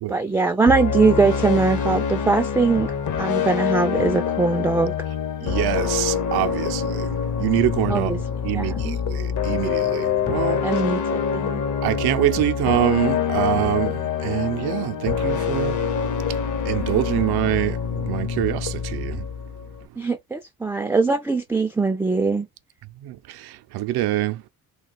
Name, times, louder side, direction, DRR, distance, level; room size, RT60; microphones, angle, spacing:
voice 1, 0.1-2.9 3.2-4.9 7.9-8.2 8.5-9.0 10.6-11.6 20.0-22.5, right 4 dB, 5° right, 0.3 m, -21 dB
sound 1, 0.7-19.8, left 7 dB, 50° left, 0.8 m, -25 dB
voice 2, 5.4-10.8 11.8-15.8 16.3-19.3 23.0-24.4, right 15 dB, 75° right, 0.5 m, -25 dB
2.4 x 2.3 x 3.9 m
supercardioid pair, 65°, 38 cm